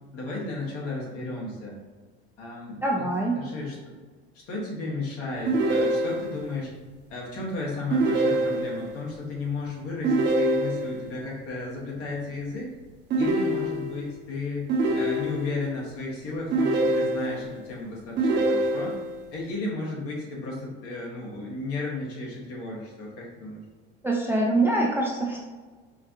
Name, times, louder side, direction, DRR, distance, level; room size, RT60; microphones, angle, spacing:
voice 1, 0.1-1.8 2.4-3.1 3.3-3.8 4.5-6.7 7.1-12.7 13.2-19.0 19.3-23.6, left 2 dB, 55° left, -3 dB, 1.5 m, -34 dB
voice 2, 2.8-3.4 24.0-25.4, right 2 dB, 5° right, -2 dB, 0.5 m, -24 dB
sound 1, 5.5-6.5 7.9-9.0 10.0-11.1 13.1-14.1 14.7-15.7 16.5-17.5 18.2-19.2, right 2 dB, 40° right, 0.8 m, -25 dB
4.7 x 2.3 x 2.8 m, 1.4 s
supercardioid pair, 95°, 29 cm